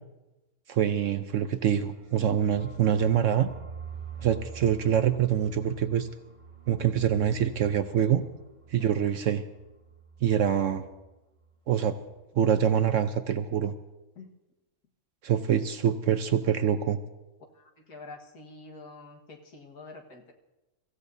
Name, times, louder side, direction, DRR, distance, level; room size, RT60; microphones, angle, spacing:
voice 1, 0.7-3.5 4.2-6.1 6.7-8.2 8.7-9.4 10.2-10.8 11.7-12.0 12.4-13.7 15.2-17.0, right 9 dB, 65° right, 10 dB, 0.8 m, -25 dB
sound 1, 1.5-11.1 11.4-11.5 11.8-12.3, right 6 dB, 25° right, 0.9 m, -47 dB
voice 2, 17.5-20.3, left 3 dB, 75° left, 1 dB, 2.0 m, -47 dB
24.0 x 15.5 x 2.7 m, 1.1 s
omnidirectional pair, 1.7 m